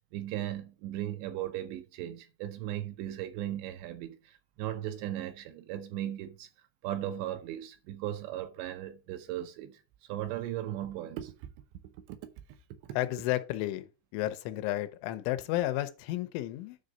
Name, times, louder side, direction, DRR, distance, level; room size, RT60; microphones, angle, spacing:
voice 1, 0.1-6.5 6.8-9.8 10.1-11.5 12.1-12.2 12.8-13.0, right 12 dB, 80° right, 2.9 m, -37 dB
voice 2, 12.9-16.8, left 15 dB, 85° left, 3.1 m, -32 dB
9.7 x 3.9 x 6.5 m
omnidirectional pair, 5.4 m